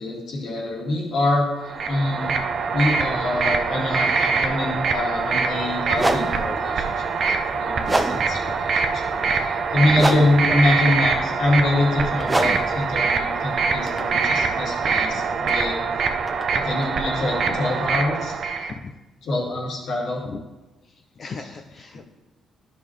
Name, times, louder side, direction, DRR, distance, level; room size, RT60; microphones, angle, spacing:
voice 1, 0.0-2.3 2.7-9.1 9.4-16.0 16.5-18.4 19.2-20.2, left 2 dB, 70° left, -3 dB, 2.3 m, -25 dB
sound 1, 1.6-18.7, right 5 dB, 55° right, 0.6 m, -24 dB
sound 2, 5.1-5.3 5.9-14.7, right 2 dB, 15° right, 0.6 m, -29 dB
sound 3, 12.2-12.5 13.9-14.4 15.5-15.7 16.3-17.0, equal, ahead, 1.0 m, -40 dB
voice 2, 20.9-22.1, left 4 dB, 50° left, 4 dB, 0.5 m, -37 dB
12.0 x 5.4 x 3.2 m, 1.1 s
cardioid pair, 90°, 0 cm